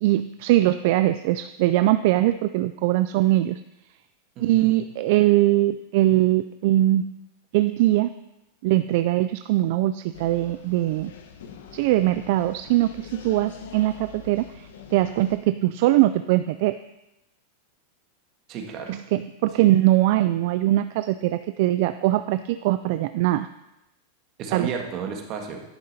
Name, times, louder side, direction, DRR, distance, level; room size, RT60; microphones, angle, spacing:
voice 1, 0.0-3.6 4.4-7.1 7.5-8.1 8.6-11.1 11.7-16.8 18.9-23.5 24.5-24.7, right 15 dB, 60° right, 11 dB, 0.3 m, -21 dB
voice 2, 4.4-4.7 18.5-19.0 24.4-25.6, right 6 dB, 40° right, 2 dB, 1.6 m, -32 dB
sound 1, 10.1-15.4, left 6 dB, 80° left, 1.1 m, -44 dB
11.0 x 6.7 x 4.2 m, 0.92 s
supercardioid pair, 140°, 0 cm